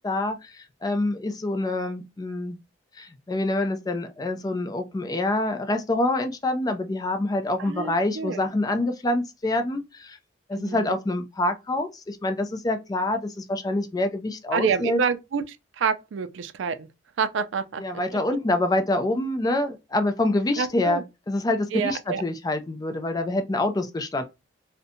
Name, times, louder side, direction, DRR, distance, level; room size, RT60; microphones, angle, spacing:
voice 1, 0.0-2.6 3.0-10.2 10.5-15.0 17.8-24.2, left 2 dB, 20° left, 0.3 m, -26 dB
voice 2, 7.6-8.4 10.5-11.0 14.5-16.9 17.2-17.8 20.6-21.0 21.7-22.2, right 6 dB, 75° right, 0.4 m, -27 dB
2.6 x 2.1 x 2.6 m
head